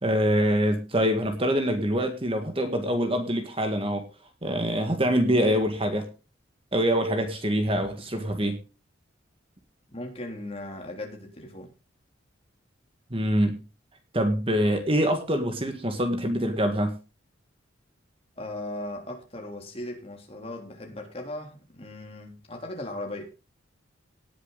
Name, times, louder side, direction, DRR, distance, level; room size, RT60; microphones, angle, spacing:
voice 1, 0.0-4.1 4.4-6.1 6.7-8.6 13.1-13.6 14.1-17.0, equal, 30° right, 6 dB, 2.0 m, -25 dB
voice 2, 9.9-11.7 18.4-23.3, left 1 dB, 30° left, 2 dB, 3.4 m, -38 dB
18.5 x 7.4 x 4.1 m, 0.31 s
head